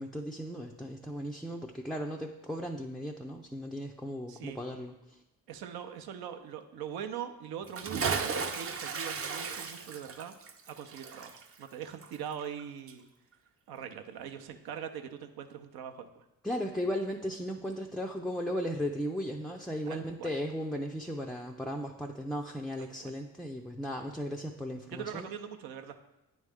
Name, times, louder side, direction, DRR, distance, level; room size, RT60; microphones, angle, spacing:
voice 1, 0.0-5.2 16.4-25.3, equal, ahead, 0 dB, 0.3 m, -36 dB
voice 2, 4.3-4.6 5.5-10.4 10.7-13.1 13.7-16.2 19.9-20.3 22.8-23.1 24.9-26.0, right 8 dB, 75° right, 6 dB, 0.6 m, -42 dB
Bathtub (filling or washing) / Splash splatter, 7.6-12.6 12.9-13.0, right 5 dB, 40° right, 0.6 m, -35 dB
8.9 x 3.1 x 3.5 m, 0.92 s
supercardioid pair, 65°, 37 cm